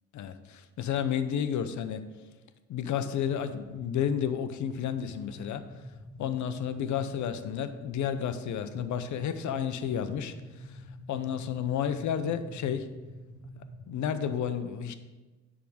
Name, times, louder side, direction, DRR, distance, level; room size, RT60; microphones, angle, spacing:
voice 1, 0.1-2.0 2.7-5.6 6.2-10.3 10.7-10.8 11.1-12.9 13.9-14.9, left 8 dB, 70° left, 10 dB, 0.8 m, -31 dB
sound 1, 2.9-14.4, equal, 15° right, 1.9 m, -46 dB
10.5 x 3.8 x 6.4 m, 1.2 s
cardioid pair, 90°, 30 cm